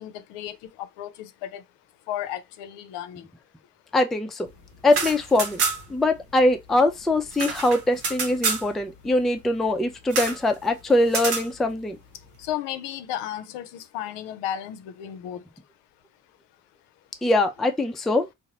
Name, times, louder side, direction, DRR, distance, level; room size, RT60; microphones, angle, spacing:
voice 1, 0.0-1.6 2.1-3.3 12.4-15.4, left 11 dB, 65° left, 0.6 m, -34 dB
voice 2, 3.9-4.5 4.8-5.6 5.9-12.0 17.2-18.3, left 2 dB, ahead, 0.4 m, -22 dB
sound 1, 4.8-6.0 6.3-6.4 6.7-8.7 10.1-10.4 11.1-11.5, right 5 dB, 85° right, 0.8 m, -28 dB
3.7 x 2.1 x 2.8 m
figure-of-eight pair, 40°, 47 cm